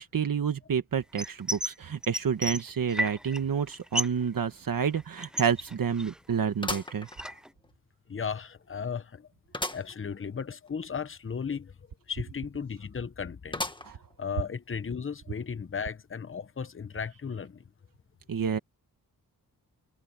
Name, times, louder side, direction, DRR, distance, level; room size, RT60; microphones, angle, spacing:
voice 1, 0.0-7.1 13.8-14.0 18.3-18.6, right 7 dB, 65° right, 1.4 m, -29 dB
sound 1, 1.2-1.7 2.0-3.4 3.7-4.2 4.5-6.3 6.7-7.5, equal, ahead, 0.5 m, -33 dB
sound 2, 4.4-4.5 4.9-5.0 6.6-7.7 8.2-8.3 9.5-9.9 10.4-10.5 10.7-10.8 13.5-14.1 14.7-14.8 15.8-15.9, left 2 dB, 15° left, 1.8 m, -36 dB
voice 2, 8.1-9.3 9.7-11.7 12.1-13.7 14.2-17.6, left 6 dB, 35° left, 0.9 m, -35 dB
wide cardioid pair, 110°, 36 cm